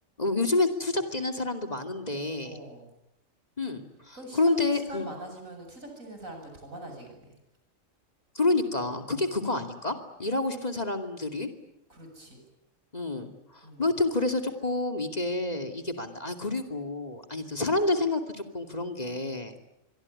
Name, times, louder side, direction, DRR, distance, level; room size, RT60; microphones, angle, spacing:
voice 1, 0.2-2.6 3.6-5.1 8.3-11.5 12.9-19.5, left 2 dB, 30° left, 6 dB, 2.7 m, -29 dB
voice 2, 2.4-2.9 4.1-7.4 9.1-9.4 10.5-10.7 11.9-12.4 13.6-13.9, right 1 dB, 85° right, 3 dB, 7.7 m, -43 dB
26.0 x 22.5 x 9.9 m, 0.86 s
omnidirectional pair, 1.4 m